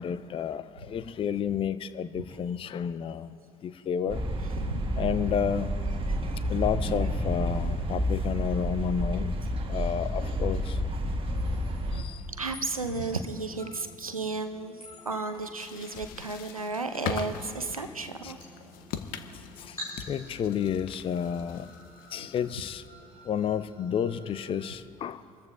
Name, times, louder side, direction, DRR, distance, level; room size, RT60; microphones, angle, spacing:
voice 1, 0.0-3.3 3.6-4.2 5.0-5.7 6.4-9.4 9.7-10.8 11.9-12.3 13.7-13.8 14.9-15.1 18.2-18.3 19.3-19.8 20.1-21.7 22.1-22.8 23.2-25.2, left 8 dB, 30° left, 14 dB, 0.5 m, -31 dB
sound 1, 4.1-12.0, equal, 30° right, 1.6 m, -30 dB
voice 2, 6.1-6.5 7.5-7.6 11.9-12.1 12.4-14.7 15.0-18.4, right 3 dB, 90° right, 9 dB, 0.7 m, -34 dB
sound 2, 11.3-24.7, left 1 dB, 90° left, 3.6 m, -50 dB
sound 3, 15.3-22.6, left 7 dB, 55° left, 0.8 m, -41 dB
26.5 x 14.0 x 2.4 m, 2.5 s
figure-of-eight pair, 55°, 18 cm